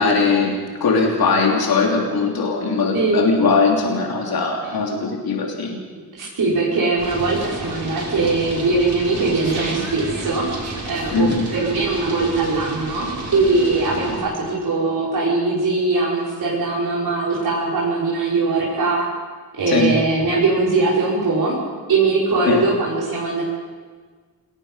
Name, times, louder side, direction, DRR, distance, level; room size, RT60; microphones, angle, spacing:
voice 1, 0.0-5.8 11.1-11.5 19.7-20.0 22.5-22.6, left 4 dB, 80° left, -1 dB, 3.1 m, -20 dB
voice 2, 6.1-10.5 10.9-19.1 19.6-21.6 21.9-23.4, right 3 dB, 85° right, -6 dB, 5.5 m, -21 dB
sound 1, 7.0-14.2, right 2 dB, 50° right, 6.4 m, -31 dB
27.0 x 19.0 x 5.6 m, 1.5 s
wide cardioid pair, 105°, 36 cm